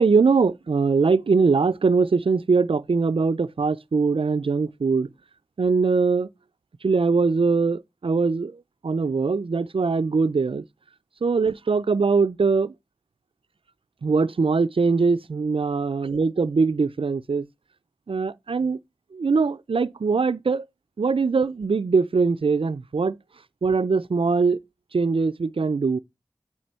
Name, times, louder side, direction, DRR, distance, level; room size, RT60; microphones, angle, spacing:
voice 1, 0.0-5.1 5.6-6.3 6.8-10.6 11.2-12.7 14.0-17.5 18.1-18.8 19.1-20.6 21.0-23.2 23.6-24.6 24.9-26.0, right 4 dB, 75° right, 0.4 m, -22 dB
8.7 x 3.1 x 4.3 m
wide cardioid pair, 40°, 9 cm